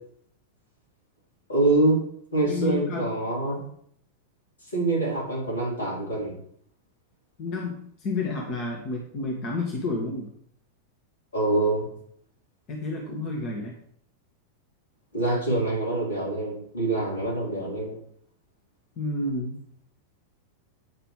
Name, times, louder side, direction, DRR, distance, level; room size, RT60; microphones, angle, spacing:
voice 1, 1.5-2.0 2.3-3.6 4.7-6.4 11.3-11.9 15.1-18.0, right 2 dB, 75° left, -3 dB, 4.2 m, -25 dB
voice 2, 2.4-3.1 7.4-10.3 12.7-13.7 19.0-19.6, left 3 dB, 35° left, 0 dB, 1.9 m, -30 dB
9.5 x 5.9 x 5.0 m, 0.65 s
figure-of-eight pair, 90°, 0 cm